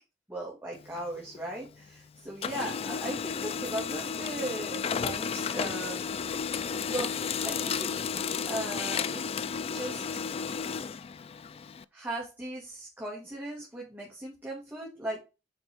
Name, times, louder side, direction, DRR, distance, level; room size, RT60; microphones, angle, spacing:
voice 1, 0.3-6.2 6.7-7.9 8.5-9.2 9.7-10.2 11.9-15.2, right 1 dB, 10° right, -4 dB, 1.8 m, -38 dB
Printer, 0.7-2.0 2.3-11.8, left 6 dB, 35° left, 0.3 m, -33 dB
7.1 x 4.5 x 3.5 m, 0.28 s
head